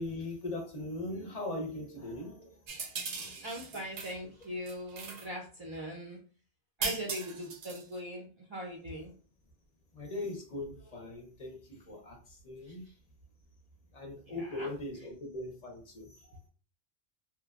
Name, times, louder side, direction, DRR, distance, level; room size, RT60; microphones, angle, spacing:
voice 1, 0.0-2.6 3.1-3.5 9.9-12.8 13.9-16.4, left 2 dB, 45° left, 1 dB, 0.6 m, -40 dB
sound 1, 2.7-4.2 4.4-5.3 6.8-7.9, right 4 dB, 90° right, 0.9 m, -39 dB
voice 2, 3.4-6.2 6.8-9.1 12.7-12.9 14.2-14.7, equal, 50° right, -1 dB, 0.3 m, -41 dB
3.0 x 2.1 x 2.3 m, 0.39 s
omnidirectional pair, 1.1 m